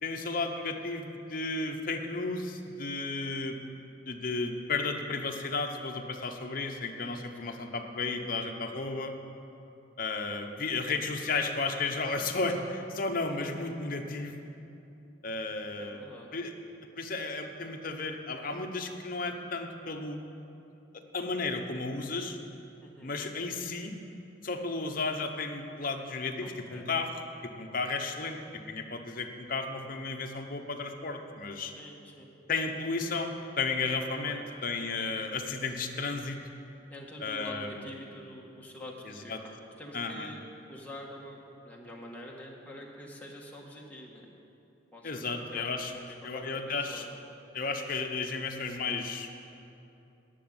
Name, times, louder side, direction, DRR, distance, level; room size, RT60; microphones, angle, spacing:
voice 1, 0.0-3.6 4.1-9.1 10.0-14.3 15.2-16.0 16.3-16.5 17.0-20.2 21.1-22.4 23.0-23.9 24.4-27.1 27.4-31.7 32.5-36.4 37.2-37.8 39.1-39.4 39.9-40.3 45.0-45.9 46.2-47.1 47.5-49.3, left 3 dB, 50° left, 3 dB, 1.0 m, -33 dB
voice 2, 15.8-16.3 22.8-23.1 26.4-26.9 31.7-32.3 34.2-34.5 36.9-44.3 44.9-47.1, left 1 dB, 10° left, -3 dB, 1.6 m, -46 dB
11.5 x 7.0 x 9.5 m, 2.8 s
head